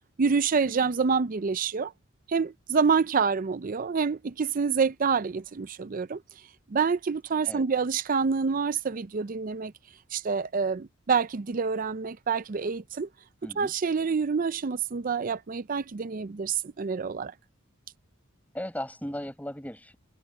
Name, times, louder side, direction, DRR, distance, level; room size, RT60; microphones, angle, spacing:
voice 1, 0.2-1.9 2.3-6.2 6.7-9.7 10.1-13.1 13.6-17.3, right 5 dB, 40° right, 0.5 m, -27 dB
voice 2, 13.4-13.7 18.5-20.0, left 1 dB, 10° left, 6.7 m, -37 dB
head